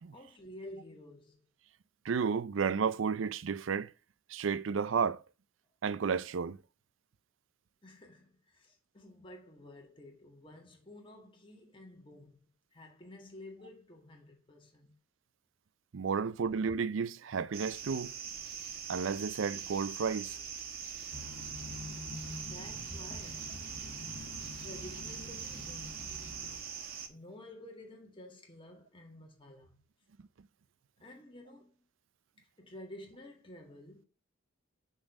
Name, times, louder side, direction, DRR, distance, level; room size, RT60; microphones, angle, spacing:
voice 1, 0.1-1.4 7.8-12.4 12.7-14.9 22.3-23.8 24.5-26.2 27.1-29.8 31.0-31.8 32.6-34.1, left 1 dB, 25° left, 1.8 m, -51 dB
voice 2, 2.0-3.9 4.3-5.2 5.8-6.6 15.9-18.1 18.9-20.4, right 6 dB, 75° right, 0.5 m, -32 dB
sound 1, 17.5-27.1, right 7 dB, 50° right, 1.2 m, -43 dB
sound 2, 21.1-26.6, left 2 dB, 80° left, 1.5 m, -46 dB
6.3 x 4.2 x 5.9 m
head